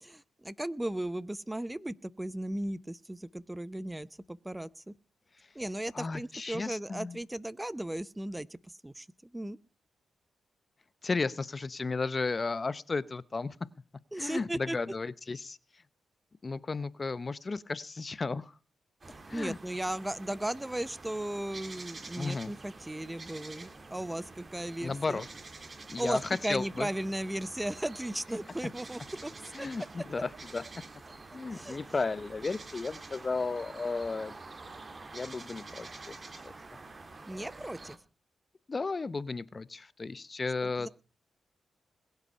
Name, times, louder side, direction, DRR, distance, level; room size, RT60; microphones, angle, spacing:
voice 1, 0.0-4.9 5.5-9.1 9.3-9.6 14.1-14.8 19.3-25.2 25.8-29.3 29.6-29.7 31.5-31.8 37.3-38.0 40.6-40.9, right 1 dB, 10° right, 17 dB, 0.7 m, -36 dB
voice 2, 5.9-7.2 11.0-13.7 14.2-15.6 16.4-18.5 19.3-19.6 22.2-22.5 24.8-25.3 25.9-26.2 26.5-26.9 29.5-30.6 31.3-34.3 35.1-36.1 36.4-36.5 38.7-40.9, left 4 dB, 40° left, 17 dB, 0.8 m, -34 dB
sound 1, 19.0-38.0, right 3 dB, 40° right, 2.0 m, -48 dB
21.0 x 8.1 x 5.6 m, 0.34 s
cardioid pair, 65°, 0 cm